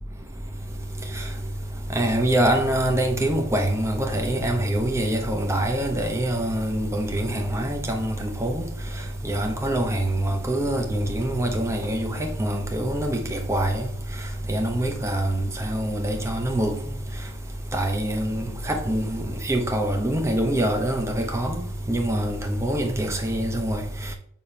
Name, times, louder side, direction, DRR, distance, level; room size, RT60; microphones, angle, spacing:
voice 1, 2.0-8.6 9.2-13.9 14.5-16.7 17.7-23.8, right 1 dB, 15° right, 0.8 m, -25 dB
6.9 x 3.0 x 5.5 m
head